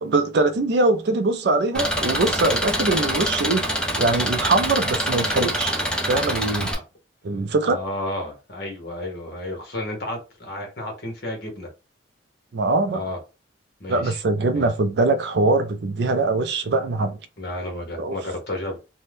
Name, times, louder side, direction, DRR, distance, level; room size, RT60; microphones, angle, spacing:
voice 1, 0.0-5.7 6.1-6.7 7.2-7.8 12.5-13.0 13.9-17.2 18.0-18.2, right 3 dB, 60° right, 0.4 m, -22 dB
Engine, 1.7-6.7, equal, 5° left, 0.5 m, -25 dB
voice 2, 7.6-11.7 12.9-13.2 13.8-14.2 14.5-14.7 17.4-18.8, left 1 dB, 55° left, 1.0 m, -32 dB
2.6 x 2.1 x 3.3 m
head